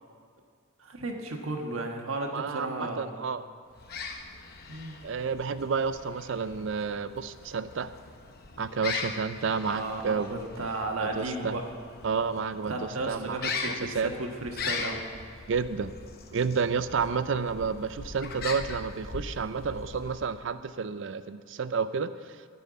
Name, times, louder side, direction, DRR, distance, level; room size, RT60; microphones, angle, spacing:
voice 1, 0.8-3.1 4.7-4.9 9.6-11.6 12.7-15.0, right 2 dB, 80° right, 2 dB, 1.4 m, -34 dB
voice 2, 2.3-3.4 5.0-7.9 8.6-10.3 11.0-11.5 12.0-12.7 13.1-13.4 13.7-14.1 15.5-16.0 16.3-22.1, right 5 dB, 60° right, 13 dB, 0.4 m, -30 dB
sound 1, 3.7-20.5, left 4 dB, 45° left, 0.8 m, -40 dB
12.5 x 5.7 x 9.2 m, 2.1 s
head